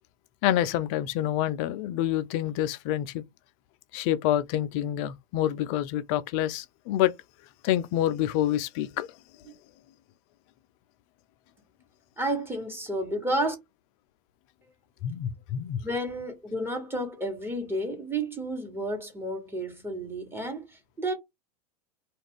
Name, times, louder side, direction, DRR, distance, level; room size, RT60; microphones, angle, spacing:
voice 1, 0.4-3.2 3.9-7.1 7.6-9.1 15.0-15.8, left 12 dB, 50° left, 0.4 m, -27 dB
voice 2, 12.2-13.5 15.8-21.1, right 1 dB, 10° right, 1.1 m, -31 dB
2.3 x 2.3 x 3.5 m
hypercardioid pair, 100°, 21 cm